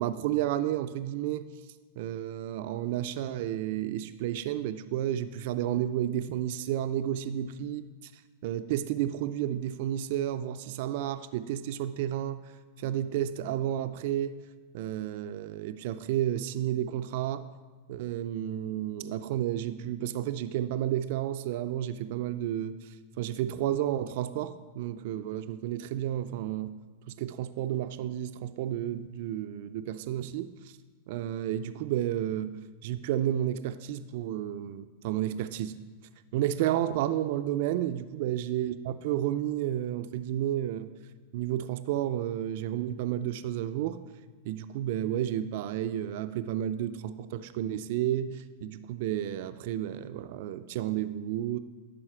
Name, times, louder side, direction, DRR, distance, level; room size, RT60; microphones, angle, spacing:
voice 1, 0.0-1.5 2.0-12.5 12.8-14.4 14.7-17.4 17.9-26.8 27.1-30.8 31.1-35.8 36.3-40.9 41.3-44.0 44.4-51.6, right 11 dB, 60° right, 11 dB, 0.3 m, -31 dB
11.0 x 4.0 x 4.4 m, 1.3 s
hypercardioid pair, 125°, 0 cm